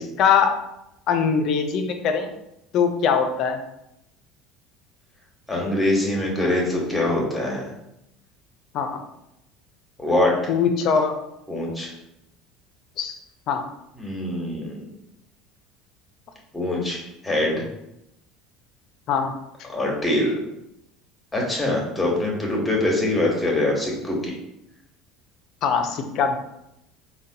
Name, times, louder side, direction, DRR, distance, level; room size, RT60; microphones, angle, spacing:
voice 1, 0.2-0.5 1.1-2.3 2.7-3.6 8.7-9.0 10.5-11.1 13.0-13.1 13.5-13.6 19.1-19.3 25.6-26.4, left 6 dB, 55° left, 6 dB, 0.4 m, -21 dB
voice 2, 5.5-7.6 10.0-10.3 11.5-11.9 14.0-14.8 16.5-17.6 19.6-20.4 21.3-24.3, left 1 dB, 10° left, -2 dB, 1.2 m, -23 dB
3.7 x 2.2 x 2.7 m, 0.83 s
hypercardioid pair, 75°, 0 cm